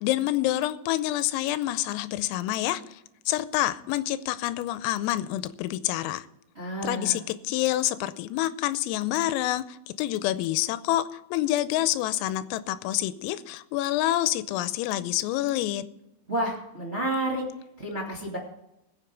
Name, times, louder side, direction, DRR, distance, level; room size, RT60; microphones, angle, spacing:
voice 1, 0.0-3.0 3.3-6.3 6.8-15.8, left 14 dB, 90° left, 14 dB, 3.3 m, -27 dB
voice 2, 6.5-7.2 16.3-17.4 17.8-18.4, right 1 dB, 35° right, -3 dB, 1.0 m, -30 dB
21.5 x 7.6 x 4.7 m, 0.88 s
omnidirectional pair, 6.0 m